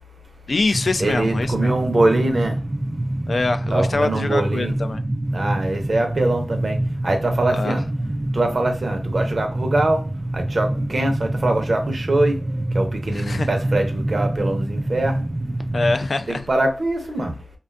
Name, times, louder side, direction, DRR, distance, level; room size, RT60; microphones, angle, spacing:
voice 1, 0.5-1.8 3.3-5.0 7.5-7.8 13.1-13.5 15.7-16.5, left 3 dB, 65° left, 0.3 m, -24 dB
sound 1, 0.7-16.0, right 1 dB, 30° right, 0.3 m, -26 dB
voice 2, 1.0-2.6 3.7-4.7 5.3-6.8 7.0-7.8 8.3-10.0 10.3-12.4 12.7-15.2 16.3-17.4, right 2 dB, 55° right, 0.7 m, -23 dB
2.5 x 2.3 x 2.3 m
wide cardioid pair, 65°, 0 cm